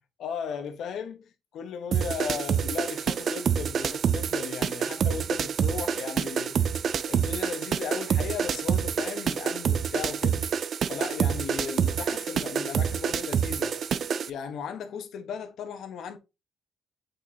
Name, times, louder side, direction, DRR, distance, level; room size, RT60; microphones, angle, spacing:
voice 1, 0.2-6.7 7.1-10.4 10.8-13.8 14.3-16.2, left 7 dB, 75° left, 1.2 m, -36 dB
sound 1, 1.9-14.3, right 7 dB, 60° right, 0.5 m, -27 dB
8.3 x 4.3 x 2.9 m
cardioid pair, 90°, 0 cm